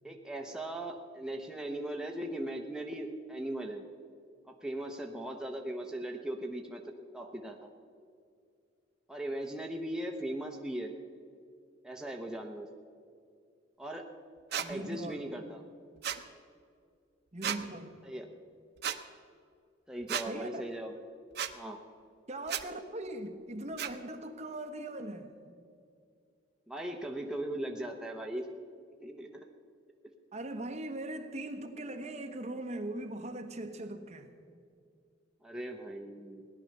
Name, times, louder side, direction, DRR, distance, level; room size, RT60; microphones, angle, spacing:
voice 1, 0.0-3.8 4.5-7.7 9.1-11.0 11.8-12.7 13.8-14.1 14.5-15.6 18.0-18.3 19.9-21.0 21.5-21.8 26.7-28.5 29.0-29.4 35.4-36.5, right 1 dB, 5° right, 1 dB, 0.8 m, -39 dB
sound 1, 14.5-14.7 16.0-16.2 17.4-17.6 18.8-19.0 20.1-20.3 21.4-21.5 22.5-22.6 23.8-23.9, right 9 dB, 60° right, 0.8 m, -33 dB
voice 2, 14.6-15.3 17.3-18.0 20.3-20.6 22.3-25.3 30.3-34.3, right 1 dB, 35° right, 5 dB, 1.2 m, -40 dB
17.5 x 11.0 x 6.6 m, 2.3 s
head